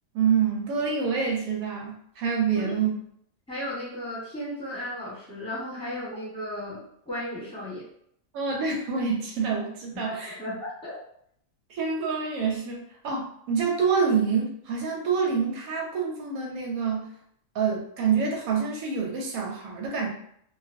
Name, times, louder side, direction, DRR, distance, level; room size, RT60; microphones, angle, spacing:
voice 1, 0.1-2.9 8.3-10.4 11.7-17.1 17.5-20.1, right 6 dB, 90° right, -1 dB, 1.0 m, -27 dB
voice 2, 3.5-7.9 9.9-11.0, left 1 dB, 5° left, -8 dB, 0.9 m, -35 dB
2.4 x 2.1 x 2.5 m, 0.69 s
omnidirectional pair, 1.4 m